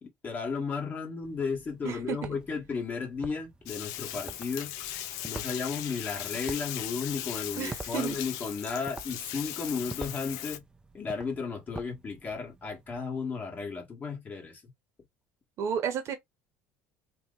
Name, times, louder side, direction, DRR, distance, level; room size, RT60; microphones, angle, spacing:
voice 1, 0.0-4.8 5.2-10.6 10.9-14.6, left 5 dB, 30° left, 1.5 m, -34 dB
sound 1, 1.2-13.0, right 3 dB, 15° right, 0.5 m, -48 dB
voice 2, 1.8-2.4 7.6-8.2 15.6-16.1, right 8 dB, 55° right, 1.0 m, -32 dB
Bathtub (filling or washing), 3.7-10.6, left 12 dB, 75° left, 0.5 m, -38 dB
3.0 x 2.1 x 3.9 m
supercardioid pair, 100°, 6 cm